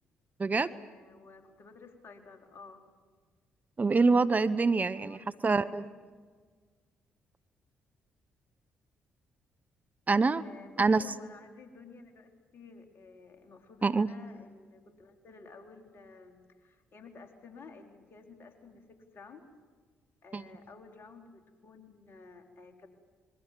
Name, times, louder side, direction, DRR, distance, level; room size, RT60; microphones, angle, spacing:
voice 1, 0.5-2.8 4.9-6.2 10.4-19.5 20.2-22.9, left 4 dB, 50° left, 5 dB, 4.2 m, -53 dB
voice 2, 3.8-5.8 10.1-10.4 10.8-11.0 13.8-14.1 20.3-20.4, right 4 dB, 30° right, 13 dB, 1.0 m, -25 dB
27.5 x 23.0 x 7.6 m, 1.5 s
hypercardioid pair, 45°, 5 cm